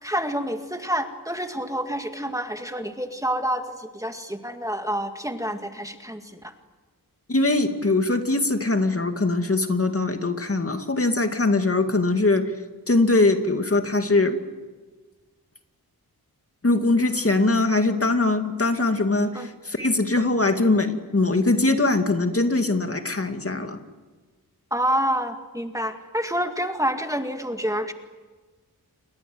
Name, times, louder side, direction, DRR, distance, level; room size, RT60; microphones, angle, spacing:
voice 1, 0.0-6.5 19.3-19.5 24.7-27.9, equal, 10° right, 6 dB, 2.0 m, -28 dB
voice 2, 7.3-12.5 12.9-14.4 16.6-23.8, left 2 dB, 35° left, 6 dB, 2.2 m, -22 dB
29.0 x 22.5 x 7.8 m, 1.3 s
wide cardioid pair, 90°, 37 cm